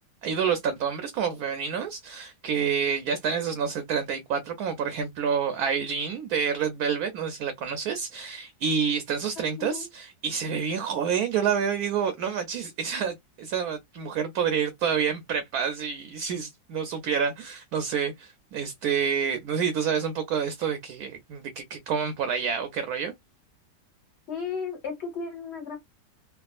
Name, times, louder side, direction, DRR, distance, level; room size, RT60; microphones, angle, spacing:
voice 1, 0.2-23.1, right 7 dB, 70° right, 0.9 m, -28 dB
voice 2, 9.6-9.9 24.3-25.8, left 5 dB, 40° left, 1.6 m, -34 dB
3.3 x 2.4 x 2.3 m
omnidirectional pair, 2.0 m